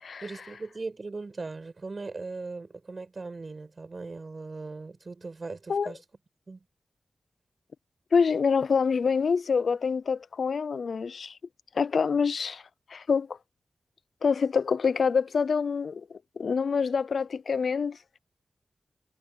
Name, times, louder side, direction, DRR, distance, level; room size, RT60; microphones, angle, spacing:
voice 1, 0.2-6.0 6.5-6.7, right 3 dB, 40° right, 7.0 m, -39 dB
voice 2, 8.1-11.4 11.7-12.6 12.9-13.4 14.2-18.0, left 5 dB, 75° left, 0.4 m, -26 dB
wide cardioid pair, 130°, 0 cm